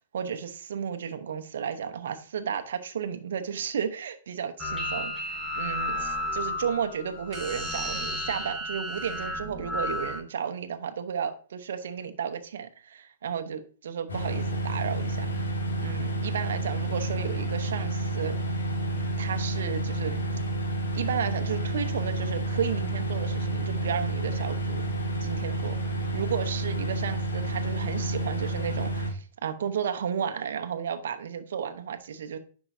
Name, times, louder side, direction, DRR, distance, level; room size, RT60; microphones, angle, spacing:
voice 1, 0.1-15.3 15.8-18.4 19.0-20.2 20.9-24.8 25.2-32.4, right 7 dB, 70° right, 1.0 m, -33 dB
sound 1, 4.6-10.2, left 1 dB, 10° left, 2.5 m, -32 dB
sound 2, 14.1-29.1, right 2 dB, 80° left, 2.2 m, -30 dB
9.8 x 6.0 x 2.7 m
hypercardioid pair, 115°, 0 cm